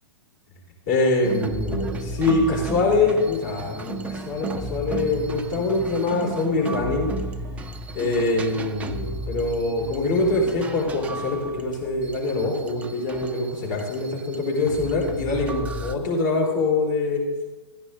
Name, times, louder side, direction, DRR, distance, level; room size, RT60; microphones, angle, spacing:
voice 1, 0.9-7.1 7.9-17.2, left 3 dB, 50° left, -3 dB, 3.9 m, -24 dB
sound 1, 1.2-15.9, right 2 dB, 10° right, 0.4 m, -34 dB
13.5 x 9.9 x 3.8 m, 1.2 s
figure-of-eight pair, 110°, 14 cm